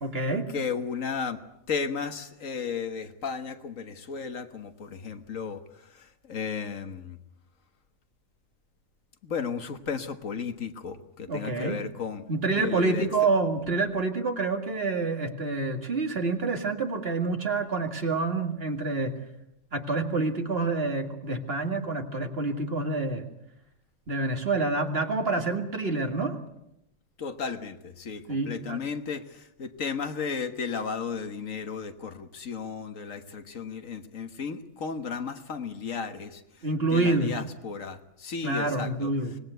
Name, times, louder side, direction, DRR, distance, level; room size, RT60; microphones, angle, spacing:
voice 1, 0.0-0.5 11.3-11.8 12.3-19.1 19.7-23.3 24.1-26.4 28.3-28.8 36.6-37.3 38.4-39.3, right 3 dB, 50° right, 5 dB, 2.4 m, -27 dB
voice 2, 0.5-1.4 1.7-7.2 9.2-12.3 12.6-13.1 27.2-36.7 36.9-39.1, left 5 dB, 85° left, 8 dB, 1.8 m, -34 dB
25.0 x 20.0 x 8.0 m, 0.83 s
omnidirectional pair, 1.3 m